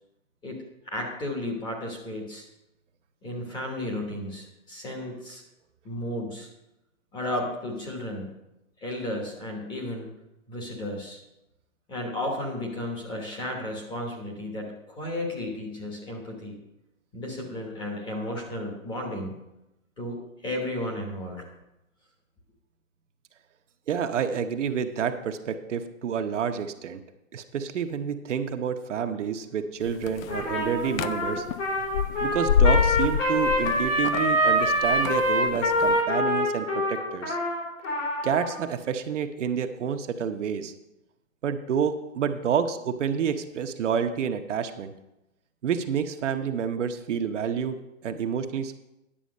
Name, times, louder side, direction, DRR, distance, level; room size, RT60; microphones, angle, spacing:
voice 1, 0.9-2.5 3.2-5.4 5.8-6.5 7.1-8.3 8.8-10.1 10.5-11.2 11.9-16.6 17.1-19.3 20.0-21.5, left 1 dB, 10° left, 0 dB, 1.1 m, -33 dB
voice 2, 23.9-27.0 27.3-31.4 32.2-37.4 38.2-40.7 41.4-44.9 45.6-47.8 48.0-48.7, right 7 dB, 60° right, 6 dB, 0.9 m, -29 dB
sound 1, 29.9-36.0, left 8 dB, 80° left, 0.6 m, -27 dB
Trumpet, 30.3-38.6, equal, 60° left, 3.1 m, -25 dB
10.0 x 7.0 x 5.2 m, 0.91 s
hypercardioid pair, 160°, 41 cm